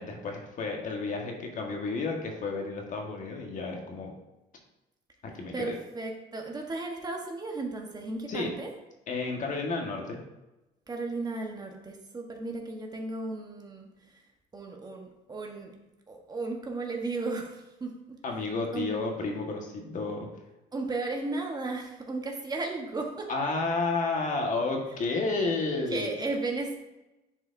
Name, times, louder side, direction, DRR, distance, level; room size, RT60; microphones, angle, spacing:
voice 1, 0.0-4.1 5.2-5.7 8.3-8.5 9.1-10.2 18.2-20.3 23.3-26.2, left 3 dB, 50° left, 1 dB, 1.5 m, -31 dB
voice 2, 5.5-8.7 10.9-14.2 14.5-15.7 16.1-18.2 18.7-18.9 20.7-23.3 25.9-26.8, right 3 dB, 25° right, 1 dB, 1.1 m, -35 dB
10.0 x 4.8 x 2.6 m, 0.99 s
cardioid pair, 110°, 17 cm